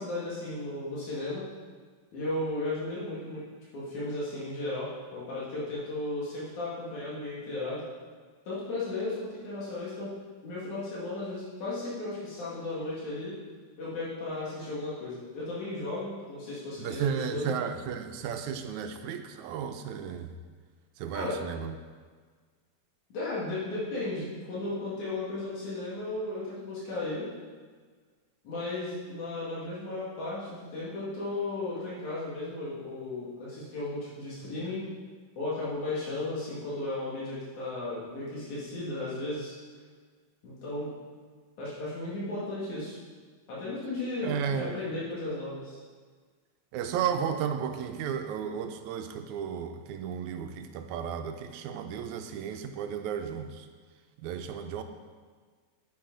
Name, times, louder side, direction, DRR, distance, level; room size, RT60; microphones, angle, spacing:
voice 1, 0.0-1.4 2.1-3.4 3.7-7.8 8.5-10.1 10.4-13.4 13.8-17.0 17.3-17.6 21.1-21.4 23.1-27.3 28.4-34.8 35.4-39.6 40.4-40.9 41.6-43.0 43.5-45.8, left 2 dB, 85° left, -8 dB, 3.5 m, -35 dB
voice 2, 16.8-20.3 21.0-21.8 44.2-44.8 46.7-53.7 54.2-54.8, right 7 dB, 90° right, 7 dB, 2.0 m, -33 dB
9.6 x 8.6 x 3.9 m, 1.5 s
omnidirectional pair, 3.3 m